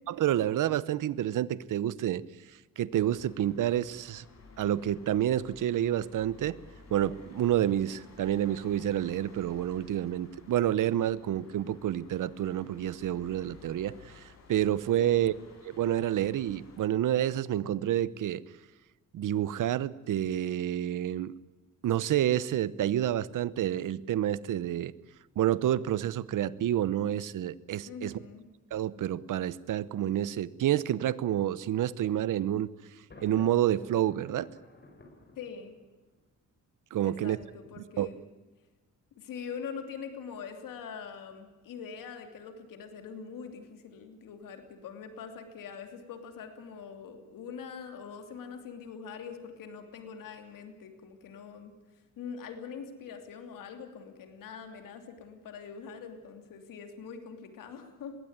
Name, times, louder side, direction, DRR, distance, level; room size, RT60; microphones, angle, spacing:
voice 1, 0.1-2.2 2.8-4.2 4.6-6.6 6.9-14.2 14.5-15.3 15.6-18.4 19.1-21.3 21.8-24.9 25.4-28.2 28.7-32.7 33.2-34.5 36.9-37.4 38.0-38.1, right 11 dB, 75° right, 19 dB, 0.9 m, -29 dB
sound 1, 2.9-16.8, left 4 dB, 55° left, 6.4 m, -55 dB
voice 2, 15.0-15.3 27.8-28.5 35.4-35.8 37.0-38.2 39.2-51.7 52.2-58.2, left 6 dB, 85° left, 6 dB, 2.9 m, -43 dB
Thunder, 33.1-36.1, left 2 dB, 35° left, 5.7 m, -52 dB
21.5 x 16.5 x 9.5 m, 1.2 s
cardioid pair, 85°, 32 cm